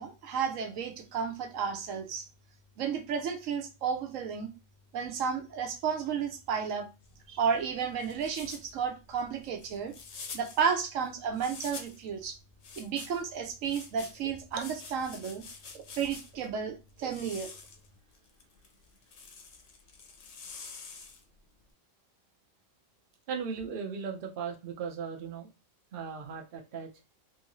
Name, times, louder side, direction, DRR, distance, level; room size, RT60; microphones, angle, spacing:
voice 1, 0.0-2.2 2.8-4.5 4.9-6.9 7.3-9.9 10.3-12.4 12.8-15.4 15.7-17.5, right 6 dB, 70° right, 1.0 m, -32 dB
sound 1, 7.0-12.1 12.6-16.5 17.0-21.4, left 5 dB, 60° left, 0.9 m, -47 dB
voice 2, 23.3-25.5 25.9-26.9, right 6 dB, 55° right, 0.6 m, -37 dB
3.1 x 2.5 x 2.9 m
omnidirectional pair, 1.5 m